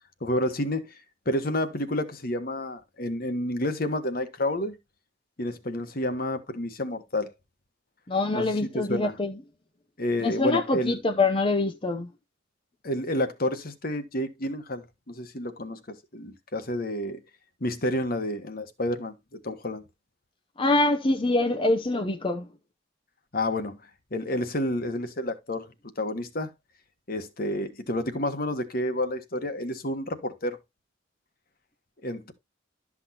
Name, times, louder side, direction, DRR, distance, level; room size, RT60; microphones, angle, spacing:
voice 1, 0.2-1.0 1.2-4.8 5.4-7.3 8.3-9.1 10.0-11.0 12.8-17.2 17.6-19.8 23.3-23.8 24.1-25.7 26.0-26.5 27.1-30.6 32.0-32.3, left 1 dB, 50° left, 1.4 m, -30 dB
voice 2, 8.1-9.4 10.2-12.1 20.6-22.5, left 2 dB, 30° left, 0.7 m, -25 dB
12.5 x 6.1 x 2.9 m
head